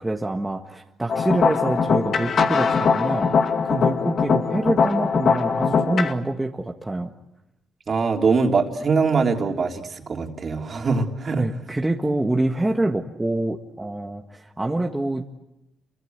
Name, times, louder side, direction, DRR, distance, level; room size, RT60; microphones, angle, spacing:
voice 1, 0.0-3.3 3.6-7.1 11.4-15.4, right 2 dB, 10° right, 2 dB, 1.7 m, -26 dB
sound 1, 1.1-6.1, left 5 dB, 55° left, 2.1 m, -21 dB
voice 2, 7.9-11.5, right 4 dB, 45° right, 3 dB, 3.5 m, -22 dB
28.5 x 24.5 x 8.2 m, 0.90 s
cardioid pair, 90°, 0 cm